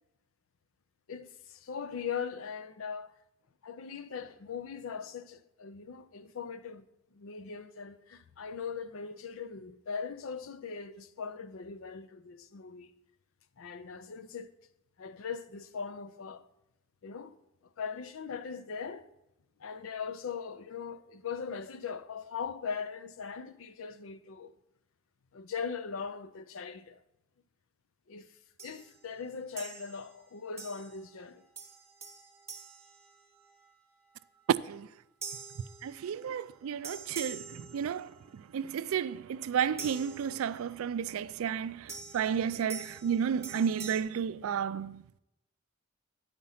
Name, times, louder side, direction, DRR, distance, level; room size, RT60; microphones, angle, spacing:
voice 1, 1.1-3.1 3.6-6.8 7.1-12.9 13.6-14.5 15.0-16.4 17.0-17.4 17.8-19.1 19.6-24.5 25.3-27.0 28.1-31.4, left 6 dB, 70° left, 0.5 m, -40 dB
sound 1, 28.6-29.0 29.6-30.2 30.6-31.1 31.6-33.7 35.2-36.4 36.8-38.3 39.8-40.8 41.9-44.0, right 5 dB, 15° right, 0.8 m, -46 dB
voice 2, 35.8-45.0, right 7 dB, 80° right, 0.3 m, -32 dB
9.7 x 5.1 x 5.5 m
head